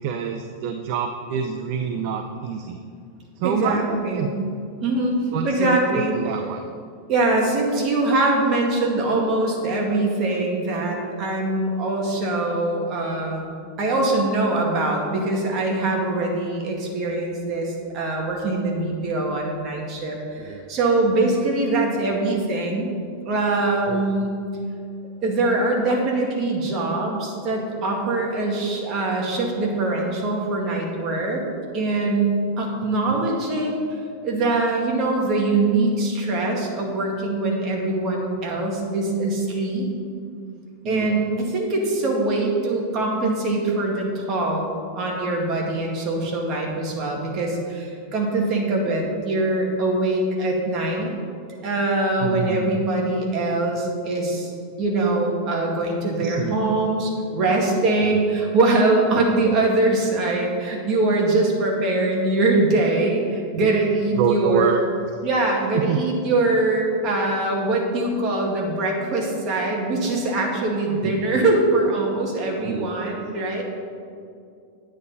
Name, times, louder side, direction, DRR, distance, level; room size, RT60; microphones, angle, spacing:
voice 1, 0.0-2.8 3.4-4.3 5.3-6.6 20.4-20.7 23.9-24.0 33.1-33.2 40.8-41.2 52.2-52.8 56.2-56.6 58.0-58.1 59.1-59.2 63.6-63.7 64.1-64.8 65.7-66.0 71.0-71.2 72.6-72.8, right 7 dB, 55° right, 6 dB, 0.6 m, -26 dB
voice 2, 3.4-4.4 4.8-5.1 5.4-6.1 7.1-13.5 13.8-22.9 23.2-24.4 25.2-31.4 31.7-33.8 34.2-39.9 40.8-44.7 45.0-51.1 51.6-54.5 54.8-64.7 65.2-73.6, right 2 dB, 40° right, -1 dB, 2.2 m, -23 dB
9.8 x 8.8 x 4.2 m, 2.3 s
supercardioid pair, 140°, 0 cm